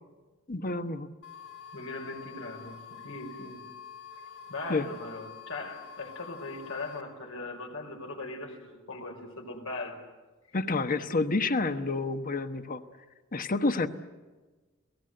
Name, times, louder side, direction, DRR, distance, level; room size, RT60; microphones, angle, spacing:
voice 1, 0.5-1.1 4.7-4.9 10.5-12.8 13.3-13.9, left 3 dB, 45° left, 10 dB, 1.2 m, -29 dB
sound 1, 1.2-7.0, left 7 dB, 65° left, 3.7 m, -47 dB
voice 2, 1.7-3.7 4.5-10.0, left 2 dB, 80° left, 3 dB, 4.9 m, -39 dB
29.0 x 18.5 x 7.8 m, 1.3 s
head